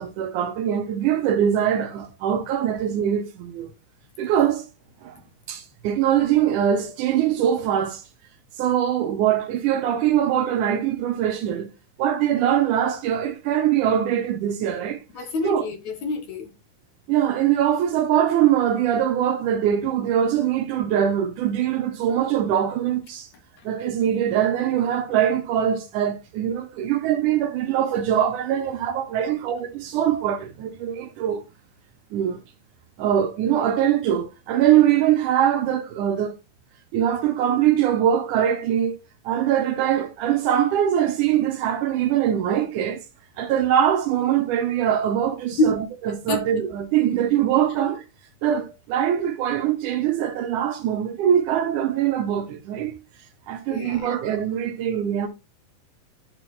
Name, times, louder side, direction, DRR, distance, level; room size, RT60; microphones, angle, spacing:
voice 1, 0.0-3.7 4.2-4.7 5.0-5.2 5.5-8.0 8.6-11.7 12.0-15.0 15.4-15.6 17.1-23.3 23.7-31.4 32.1-32.4 33.0-36.4 36.9-39.0 39.2-43.0 43.4-45.8 46.1-48.0 48.4-53.0 53.5-55.3, right 10 dB, 75° right, 2.0 m, -22 dB
voice 2, 15.1-16.5 45.6-45.8 46.1-46.4 53.7-54.2, left 2 dB, 65° left, 2.2 m, -26 dB
11.0 x 4.6 x 3.1 m
omnidirectional pair, 4.0 m